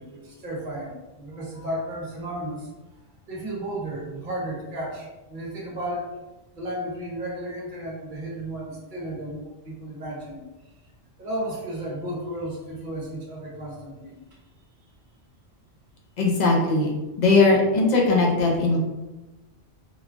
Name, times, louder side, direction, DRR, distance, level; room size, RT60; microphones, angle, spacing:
voice 1, 0.0-2.7 3.3-6.1 6.5-10.4 11.2-14.1 14.4-14.5 14.8-14.9, right 1 dB, 45° right, -3 dB, 0.9 m, -33 dB
voice 2, 16.2-16.9 17.2-18.8, left 3 dB, 50° left, -2 dB, 0.5 m, -19 dB
3.1 x 2.3 x 2.5 m, 1.1 s
omnidirectional pair, 1.3 m